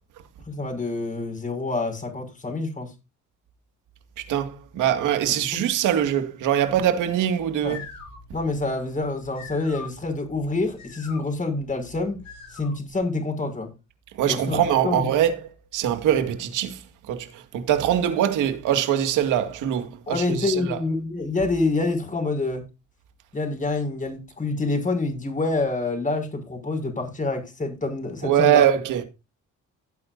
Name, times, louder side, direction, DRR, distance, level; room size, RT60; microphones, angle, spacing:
voice 1, 0.5-2.9 5.5-5.6 7.6-7.8 8.3-12.2 12.5-13.7 14.3-15.1 20.1-22.6 23.3-28.6, left 3 dB, 25° left, 6.1 m, -27 dB
voice 2, 4.3-7.8 14.2-16.8 17.1-20.8 28.2-29.0, right 10 dB, 90° right, 2.1 m, -23 dB
sound 1, 7.4-13.0, left 5 dB, 65° left, 7.8 m, -44 dB
17.0 x 9.2 x 2.7 m
cardioid pair, 90°, 30 cm